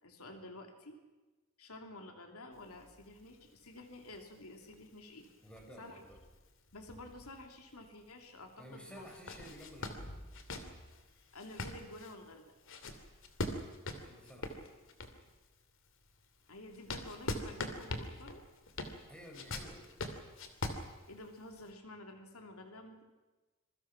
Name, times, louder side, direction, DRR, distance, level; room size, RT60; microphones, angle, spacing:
voice 1, 0.0-1.0 1.6-5.3 5.8-6.0 6.7-9.1 11.3-12.4 16.5-18.4 21.1-23.0, left 2 dB, 90° left, 4 dB, 2.9 m, -51 dB
sound 1, 2.5-7.9 8.2-8.3 8.9-15.3 15.9-21.6, left 2 dB, 65° left, 2.6 m, -43 dB
voice 2, 5.4-6.2 8.6-10.1 13.8-14.7 19.1-19.8, equal, 5° left, 0 dB, 5.8 m, -53 dB
26.5 x 22.5 x 5.9 m, 1.2 s
head